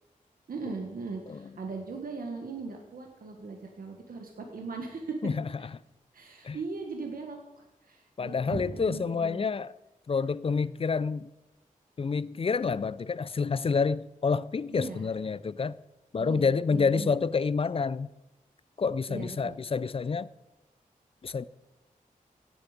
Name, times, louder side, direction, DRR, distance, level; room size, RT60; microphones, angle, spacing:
voice 1, 0.5-5.2 6.1-9.5 14.7-15.1 16.2-17.1 19.1-19.6, right 4 dB, 85° right, 1.6 m, -39 dB
voice 2, 8.2-9.7 10.1-11.3 12.0-15.8 16.1-18.1 18.8-20.3 21.2-21.5, left 5 dB, 40° left, 0.4 m, -28 dB
16.0 x 8.5 x 5.1 m
wide cardioid pair, 90°, 15 cm